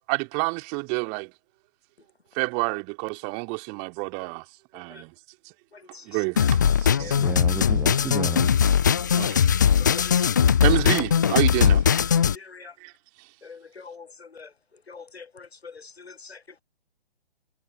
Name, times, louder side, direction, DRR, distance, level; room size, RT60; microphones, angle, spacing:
voice 1, 0.1-1.3 2.3-4.4 4.7-5.1 6.1-7.2 9.2-9.4 10.0-10.1 10.6-11.8 12.8-12.9, right 36 dB, 25° right, 2.7 m, -28 dB
sound 1, 6.4-12.4, left 8 dB, 20° left, 0.4 m, -20 dB
voice 2, 7.0-8.5, right 6 dB, 5° right, 0.8 m, -32 dB
voice 3, 9.8-10.1 12.3-12.7 13.4-14.5 14.9-16.6, left 5 dB, 85° left, 0.8 m, -44 dB
figure-of-eight pair, 125°, 30 cm